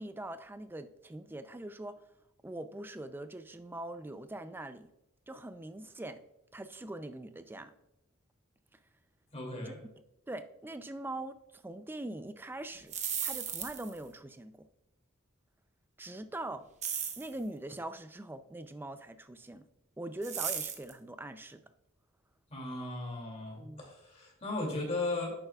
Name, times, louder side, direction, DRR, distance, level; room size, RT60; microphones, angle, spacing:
voice 1, 0.0-2.0 2.4-4.9 5.3-6.2 6.5-7.7 9.6-9.7 10.3-12.9 13.2-14.7 16.0-16.7 17.2-19.7 20.0-21.6 23.6-23.9, right 1 dB, 10° right, 11 dB, 0.3 m, -42 dB
voice 2, 9.3-9.8 22.5-25.3, left 2 dB, 30° left, 0 dB, 2.4 m, -36 dB
sound 1, 12.7-14.0 16.8-17.3 20.2-20.9, right 8 dB, 30° right, 0.9 m, -35 dB
10.5 x 7.7 x 2.3 m, 0.86 s
head